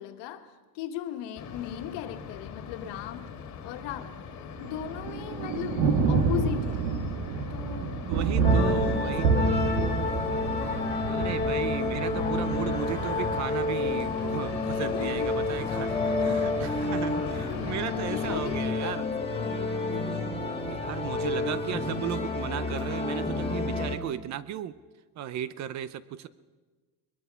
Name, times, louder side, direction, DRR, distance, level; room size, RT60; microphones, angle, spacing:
voice 1, 0.0-3.3 3.6-4.3 4.6-6.9 7.5-10.1 10.6-11.0 14.6-15.4 15.8-16.6 17.0-17.2 17.5-20.2, left 10 dB, 65° left, 6 dB, 1.9 m, -38 dB
sound 1, 1.4-18.6, left 6 dB, 35° left, 2.0 m, -40 dB
Thunder, 4.6-22.5, right 4 dB, 80° right, 2.4 m, -31 dB
voice 2, 8.1-9.8 11.1-19.1 20.7-24.7 25.2-26.3, right 11 dB, 40° right, 16 dB, 0.6 m, -36 dB
sound 2, 8.4-24.0, left 3 dB, 10° left, 2.3 m, -30 dB
22.0 x 21.0 x 5.6 m, 1.3 s
cardioid pair, 155°, 46 cm